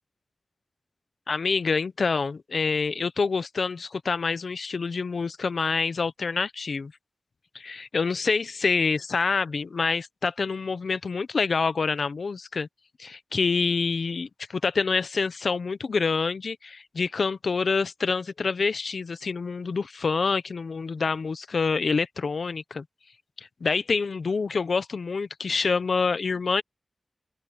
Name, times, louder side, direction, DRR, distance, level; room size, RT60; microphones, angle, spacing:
voice 1, 1.3-6.9 7.5-12.7 13.0-22.8 23.6-26.6, left 4 dB, 80° left, 0.9 m, -27 dB
open air
cardioid pair, 45°, 0 cm